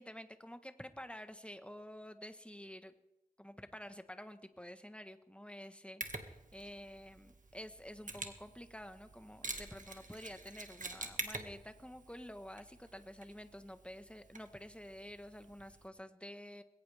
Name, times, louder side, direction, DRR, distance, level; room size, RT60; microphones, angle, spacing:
voice 1, 0.0-2.9 3.4-16.6, equal, 5° left, 9 dB, 1.3 m, -50 dB
Mechanisms, 6.0-15.9, right 2 dB, 60° right, 1.9 m, -48 dB
20.5 x 17.5 x 3.5 m, 0.93 s
wide cardioid pair, 50°, 15 cm